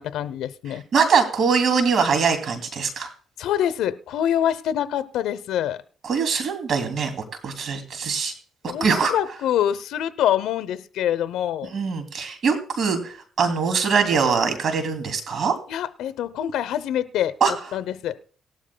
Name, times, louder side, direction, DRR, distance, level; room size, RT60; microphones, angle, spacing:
voice 1, 0.0-0.8 3.4-5.8 8.7-11.7 15.7-17.3 17.7-18.2, left 10 dB, 85° left, 14 dB, 0.7 m, -25 dB
voice 2, 0.9-3.1 6.0-7.1 7.4-8.3 8.8-9.1 11.7-15.5 17.4-17.5, right 5 dB, 60° right, 6 dB, 2.6 m, -22 dB
18.5 x 12.5 x 2.2 m, 0.43 s
cardioid pair, 90°, 0 cm